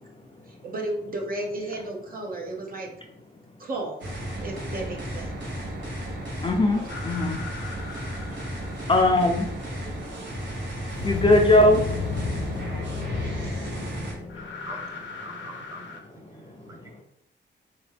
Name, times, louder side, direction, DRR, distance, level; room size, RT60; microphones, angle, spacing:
voice 1, 0.5-2.9 3.6-5.3, right 2 dB, 50° right, 0 dB, 0.9 m, -33 dB
sound 1, 4.0-14.2, equal, 70° right, 1.2 m, -34 dB
voice 2, 6.4-7.4 8.9-9.4 11.0-11.8 12.2-12.3 13.1-13.7 14.0-14.1, left 1 dB, 25° left, 2 dB, 0.5 m, -20 dB
sound 2, 6.9-9.2 10.9-16.0, left 4 dB, 90° left, 0.7 m, -34 dB
voice 3, 14.3-17.0, right 1 dB, 15° right, 0 dB, 0.9 m, -45 dB
3.5 x 3.0 x 3.3 m, 0.76 s
cardioid pair, 100°, 19 cm